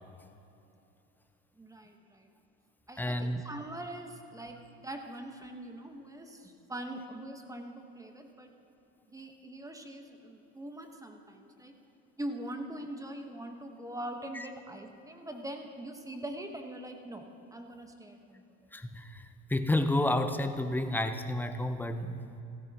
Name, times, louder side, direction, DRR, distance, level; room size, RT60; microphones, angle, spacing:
voice 1, 1.5-2.3 2.9-8.5 9.1-11.7 12.2-18.4, right 1 dB, 10° right, 4 dB, 1.2 m, -42 dB
voice 2, 3.0-3.4 14.3-14.5 18.7-22.4, left 1 dB, 5° left, 8 dB, 0.7 m, -31 dB
15.5 x 14.0 x 3.0 m, 2.8 s
supercardioid pair, 85°, 34 cm